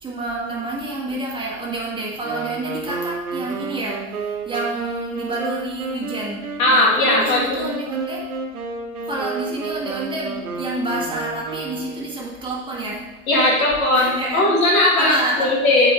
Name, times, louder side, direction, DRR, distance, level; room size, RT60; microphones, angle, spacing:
voice 1, 0.0-8.4 9.0-13.1 13.9-14.4 14.9-15.6, right 2 dB, 10° right, -3 dB, 1.5 m, -28 dB
Wind instrument woodwind instrument, 2.2-12.1, right 4 dB, 75° right, 1.0 m, -31 dB
voice 2, 6.6-7.7 13.3-15.9, left 2 dB, 65° left, -2 dB, 2.3 m, -18 dB
7.7 x 4.5 x 3.6 m, 1.1 s
figure-of-eight pair, 95°, 45 cm